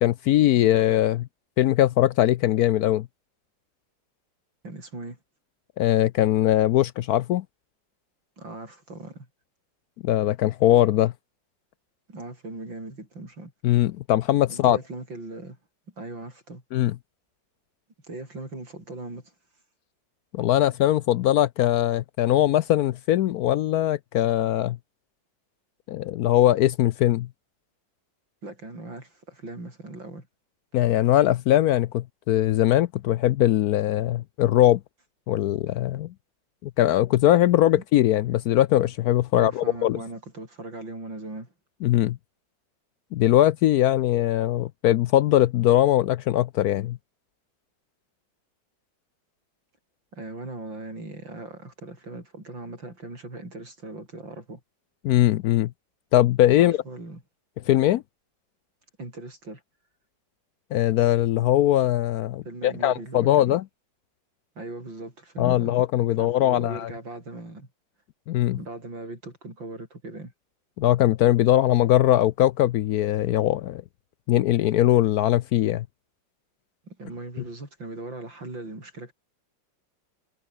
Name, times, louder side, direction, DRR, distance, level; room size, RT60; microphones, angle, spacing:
voice 1, 0.0-1.3 1.6-3.1 5.8-7.4 10.0-11.1 13.6-14.8 16.7-16.9 20.3-24.8 25.9-27.3 30.7-34.8 35.3-36.1 36.6-40.0 41.8-42.2 43.1-47.0 55.0-55.7 56.1-56.8 57.7-58.0 60.7-63.6 65.4-66.9 68.3-68.6 70.8-73.8 74.3-75.8, left 13 dB, 75° left, 0.9 m, -21 dB
voice 2, 4.6-5.2 8.4-9.3 12.1-13.5 14.5-15.6 15.9-16.6 18.1-19.3 28.4-30.3 37.7-37.8 39.3-41.5 50.1-54.6 56.6-57.2 59.0-59.6 62.5-63.6 64.6-65.8 66.2-67.7 68.5-70.3 76.8-79.1, right 2 dB, 80° right, 9.0 m, -39 dB
omnidirectional pair, 2.0 m